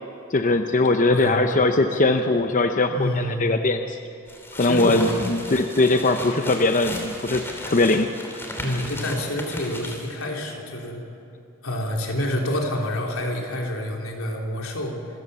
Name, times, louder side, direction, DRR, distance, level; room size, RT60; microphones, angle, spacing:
voice 1, 0.3-4.0 4.5-8.1, left 2 dB, 40° left, 6 dB, 0.7 m, -21 dB
voice 2, 2.9-3.4 4.6-5.3 8.6-11.0 11.6-15.0, equal, 85° left, 0 dB, 3.3 m, -27 dB
sound 1, 4.3-10.2, left 1 dB, 10° left, 2.9 m, -36 dB
26.5 x 14.5 x 7.0 m, 2.8 s
head